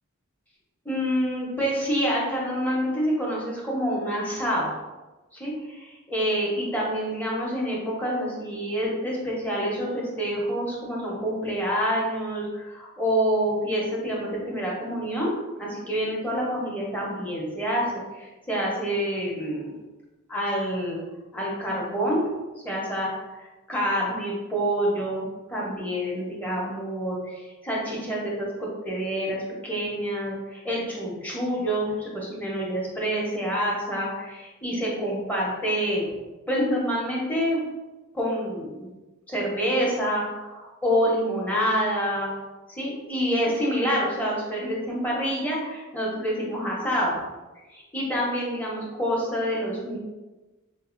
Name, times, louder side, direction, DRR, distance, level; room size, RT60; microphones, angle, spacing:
voice 1, 0.8-4.8 5.3-15.3 15.6-19.7 20.3-21.0 21.3-22.2 22.6-36.1 36.5-37.6 38.1-38.9 39.3-42.3 42.7-47.2 47.7-50.0, equal, 10° left, -5 dB, 0.8 m, -27 dB
3.9 x 2.6 x 2.4 m, 1.1 s
head